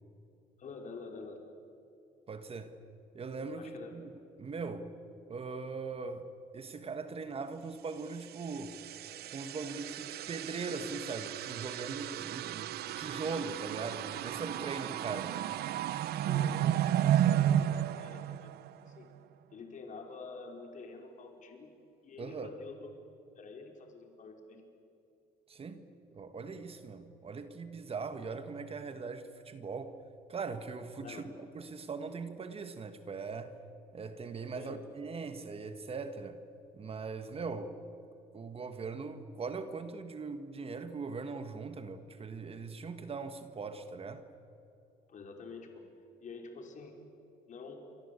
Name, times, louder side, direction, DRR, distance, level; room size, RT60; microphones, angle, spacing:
voice 1, 0.6-1.4 3.6-3.9 12.4-12.5 16.2-18.5 18.8-19.1 19.5-21.7 22.0-22.9 23.4-24.6 31.0-31.3 34.5-34.8 45.1-45.8 46.2-46.9 47.5-47.8, left 4 dB, 50° left, 4.9 m, -47 dB
voice 2, 2.3-2.7 3.1-4.1 4.4-5.0 5.3-8.8 9.3-15.4 22.2-22.6 25.5-25.8 26.1-30.0 30.3-33.5 33.9-36.4 36.8-37.8 38.3-44.2, right 4 dB, 35° right, 1.8 m, -40 dB
sound 1, 8.3-19.0, right 11 dB, 70° right, 0.9 m, -33 dB
28.5 x 24.0 x 8.5 m
cardioid pair, 110°, 17 cm